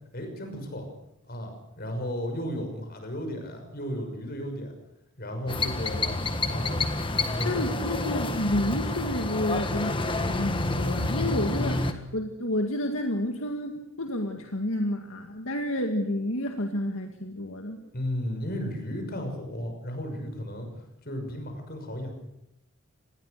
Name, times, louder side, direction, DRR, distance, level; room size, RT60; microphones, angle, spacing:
voice 1, 0.1-0.8 1.3-4.7 5.2-6.0 6.5-6.9 7.2-8.0 17.9-20.7 21.0-22.1, equal, 45° left, 5 dB, 6.1 m, -34 dB
sound 1, 5.5-11.9, left 2 dB, 25° left, 1.5 m, -29 dB
voice 2, 7.4-17.8, left 1 dB, 70° left, 4 dB, 2.1 m, -30 dB
26.5 x 20.5 x 6.7 m, 0.85 s
head